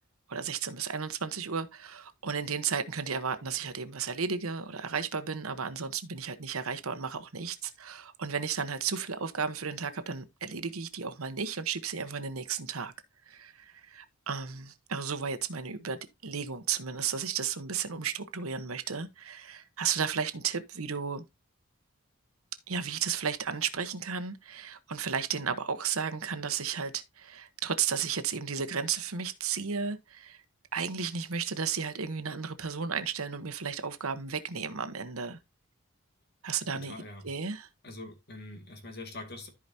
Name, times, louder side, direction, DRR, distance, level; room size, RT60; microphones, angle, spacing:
voice 1, 0.3-12.9 13.3-21.3 22.7-30.4 30.7-35.4 36.4-36.9 37.2-37.7, right 6 dB, 90° right, 1.1 m, -34 dB
voice 2, 36.7-37.3 37.8-39.5, left 2 dB, 50° left, 2.1 m, -43 dB
14.0 x 4.9 x 2.8 m
head